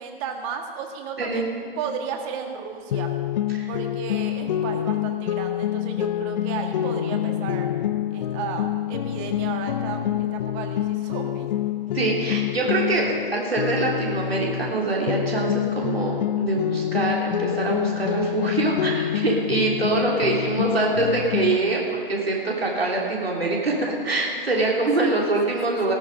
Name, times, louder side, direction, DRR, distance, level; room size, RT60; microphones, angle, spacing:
voice 1, 0.0-1.5 1.8-3.1 3.7-7.7 8.1-10.0 10.3-11.5 25.0-25.9, right 6 dB, 35° right, 4 dB, 1.8 m, -34 dB
voice 2, 1.2-1.5 3.5-3.7 11.9-25.9, right 3 dB, 85° right, -2 dB, 3.2 m, -24 dB
sound 1, 2.9-14.8 15.1-21.6, left 12 dB, 45° left, 0.6 m, -27 dB
16.0 x 13.0 x 5.3 m, 2.3 s
figure-of-eight pair, 125°, 30 cm